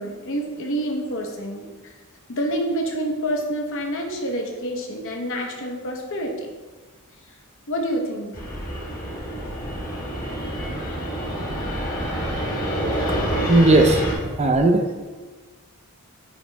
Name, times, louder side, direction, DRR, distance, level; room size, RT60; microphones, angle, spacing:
voice 1, 0.0-1.9 2.3-6.5 7.7-8.4, right 1 dB, 60° left, 1 dB, 1.0 m, -27 dB
Fixed-wing aircraft airplane, 8.3-14.2, equal, 40° left, 1.2 m, -27 dB
voice 2, 13.2-14.1 14.3-15.1, right 2 dB, 30° right, 4 dB, 0.5 m, -18 dB
9.2 x 3.1 x 3.4 m, 1.3 s
head